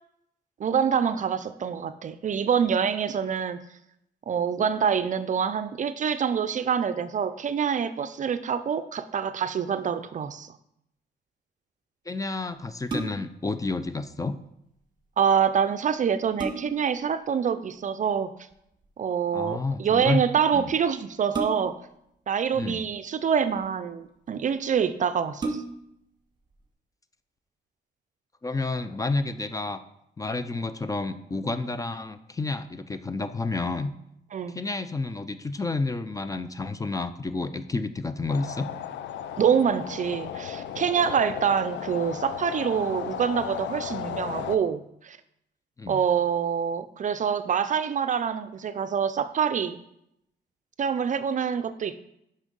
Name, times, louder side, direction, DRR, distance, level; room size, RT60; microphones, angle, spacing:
voice 1, 0.6-3.6 4.3-10.6 15.2-18.3 19.0-21.7 22.3-25.6 34.3-34.6 39.4-45.2 45.9-49.8 50.8-52.0, right 7 dB, 45° right, 12 dB, 0.4 m, -26 dB
voice 2, 12.1-14.4 19.3-20.2 20.5-20.7 22.5-22.8 28.4-29.8 30.2-33.9 34.5-38.7 45.8-46.0, left 3 dB, 20° left, 11 dB, 0.4 m, -30 dB
sound 1, 12.7-13.4 15.5-15.6 16.0-16.9 18.5-18.9 21.3-21.9 22.9-23.6 24.3-24.4 24.8-24.9 25.3-26.0 26.5-26.6, right 3 dB, 25° right, 1.2 m, -34 dB
sound 2, 38.3-44.6, left 9 dB, 85° left, 0.5 m, -35 dB
6.2 x 5.5 x 5.2 m, 0.79 s
cardioid pair, 105°, 18 cm